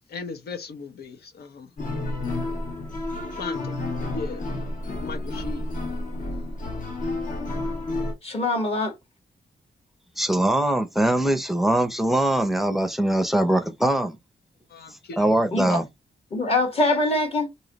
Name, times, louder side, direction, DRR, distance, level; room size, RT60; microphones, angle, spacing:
voice 1, 0.1-1.7 3.3-3.8 4.1-4.5 5.0-5.7 14.7-15.2, left 4 dB, 75° left, 0.9 m, -37 dB
sound 1, 1.8-8.1, left 2 dB, 50° left, 1.1 m, -30 dB
voice 2, 8.2-8.9 15.5-15.8 16.3-17.5, left 2 dB, 35° left, 1.5 m, -23 dB
voice 3, 10.2-14.2 15.2-15.9, right 1 dB, ahead, 0.6 m, -22 dB
3.1 x 2.7 x 3.9 m
wide cardioid pair, 135°, 17 cm